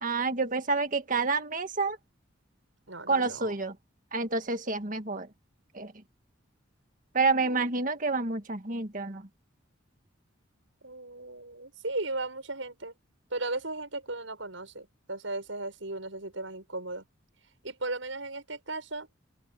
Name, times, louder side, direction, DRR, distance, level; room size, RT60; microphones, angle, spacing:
voice 1, 0.0-2.0 3.1-3.8 4.1-5.3 5.7-5.9 7.1-9.3, right 3 dB, 40° right, 1.9 m, -28 dB
voice 2, 2.9-3.5 7.4-7.7 10.8-12.9 13.3-17.0 17.6-19.1, right 2 dB, 75° right, 7.5 m, -36 dB
open air
head